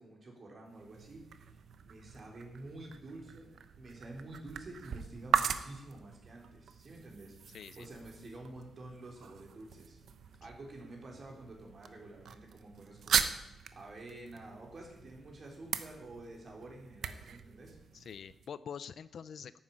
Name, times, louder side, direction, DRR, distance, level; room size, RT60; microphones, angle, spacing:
voice 1, 0.0-3.5 3.8-10.0 10.4-17.8, right 2 dB, 35° right, 0 dB, 3.7 m, -49 dB
sound 1, 0.7-18.5, right 7 dB, 60° right, 0.8 m, -39 dB
voice 2, 7.5-7.9 17.9-19.6, left 7 dB, 55° left, 16 dB, 0.5 m, -45 dB
11.5 x 9.7 x 8.7 m, 0.89 s
wide cardioid pair, 180°, 0 cm